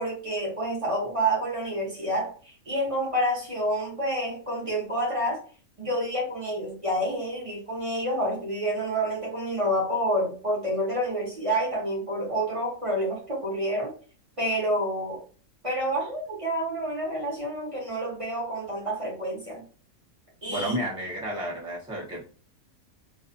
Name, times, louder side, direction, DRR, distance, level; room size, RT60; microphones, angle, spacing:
voice 1, 0.0-5.4 5.8-13.9 14.4-15.2 15.6-19.6 20.4-20.8, right 1 dB, 30° right, -4 dB, 0.7 m, -28 dB
voice 2, 20.5-22.2, equal, 5° right, -5 dB, 0.4 m, -31 dB
2.4 x 2.3 x 2.5 m, 0.39 s
omnidirectional pair, 1.5 m